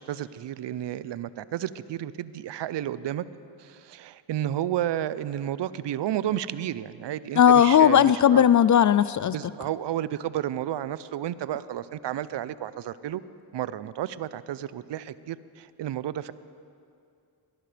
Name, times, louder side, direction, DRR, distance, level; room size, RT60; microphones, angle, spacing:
voice 1, 0.0-3.2 3.6-8.5 9.2-13.2 13.5-16.3, right 11 dB, 60° right, 16 dB, 0.7 m, -32 dB
voice 2, 7.4-9.3, left 9 dB, 40° left, 17 dB, 0.4 m, -17 dB
21.5 x 17.5 x 3.4 m, 2.4 s
supercardioid pair, 55°, 48 cm